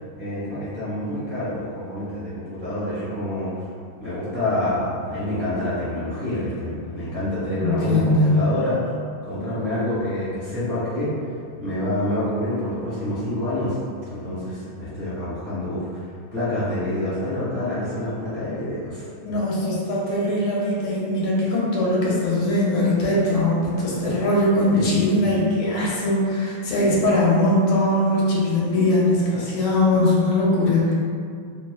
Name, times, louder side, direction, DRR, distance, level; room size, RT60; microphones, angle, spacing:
voice 1, 0.1-3.7 4.0-8.8 9.2-11.1 11.6-13.8 14.1-16.1 16.3-19.4 24.7-25.4, left 1 dB, 30° right, -15 dB, 1.3 m, -27 dB
voice 2, 7.6-8.3 19.2-30.9, left 1 dB, 85° left, -5 dB, 1.4 m, -21 dB
3.3 x 2.2 x 2.2 m, 2.2 s
omnidirectional pair, 2.3 m